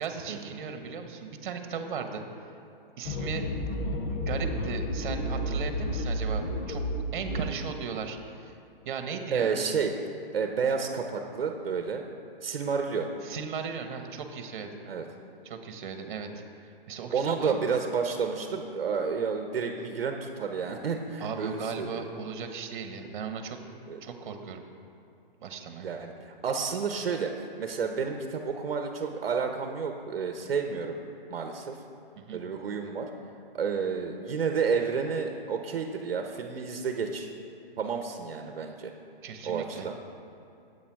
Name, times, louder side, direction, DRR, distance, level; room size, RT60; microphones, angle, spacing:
voice 1, 0.0-2.2 3.0-3.4 4.1-6.8 7.1-8.5 8.8-9.6 13.2-14.7 15.4-16.3 16.9-17.6 21.2-23.6 24.0-24.6 25.4-25.9 32.3-32.4 39.2-39.9, right 6 dB, 55° right, 6 dB, 1.2 m, -36 dB
sound 1, 3.0-7.5, equal, 15° left, 0.4 m, -31 dB
voice 2, 9.3-9.9 10.3-12.0 12.4-13.1 14.9-15.0 17.1-22.0 23.9-24.0 25.8-27.3 27.6-31.0 31.3-31.8 32.3-33.1 33.5-37.3 37.8-38.9 39.4-40.0, right 5 dB, 80° right, 5 dB, 0.9 m, -30 dB
8.8 x 8.1 x 4.7 m, 2.7 s
hypercardioid pair, 145°, 29 cm